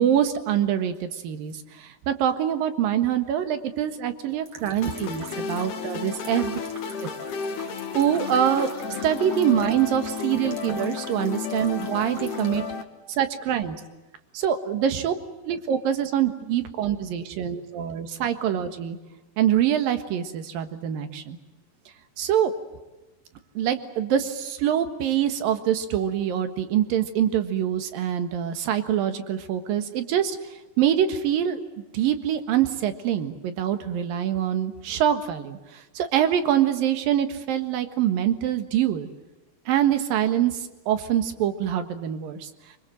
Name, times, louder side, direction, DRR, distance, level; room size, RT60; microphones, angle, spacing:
voice 1, 0.0-6.6 7.0-7.1 7.9-8.7 9.0-12.6 13.1-13.8 14.3-15.1 15.4-19.0 19.4-21.4 22.2-22.5 23.5-30.4 30.8-31.6 31.9-39.1 39.7-40.5 40.9-42.5, right 10 dB, 65° right, 9 dB, 3.1 m, -24 dB
sound 1, 4.5-12.6, right 4 dB, 45° right, 3.2 m, -46 dB
sound 2, 4.8-12.8, left 6 dB, 60° left, 2.8 m, -32 dB
25.0 x 24.5 x 7.7 m, 1.1 s
omnidirectional pair, 4.5 m